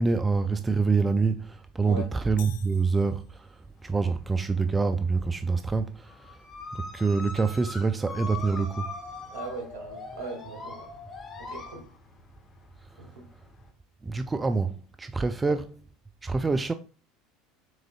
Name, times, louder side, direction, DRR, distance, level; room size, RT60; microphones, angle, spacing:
voice 1, 0.0-3.6 3.8-6.4 6.7-8.9 14.0-15.7 16.2-16.7, right 4 dB, 20° right, 0.3 m, -26 dB
sound 1, 2.4-3.8, left 12 dB, 70° left, 0.3 m, -49 dB
sound 2, 3.9-4.8 5.1-13.7, left 3 dB, 30° left, 1.4 m, -42 dB
voice 2, 9.3-10.9 11.4-11.9 13.0-13.3 15.4-15.6, right 2 dB, 65° right, 2.1 m, -39 dB
6.2 x 3.7 x 2.3 m
hypercardioid pair, 75°, 0 cm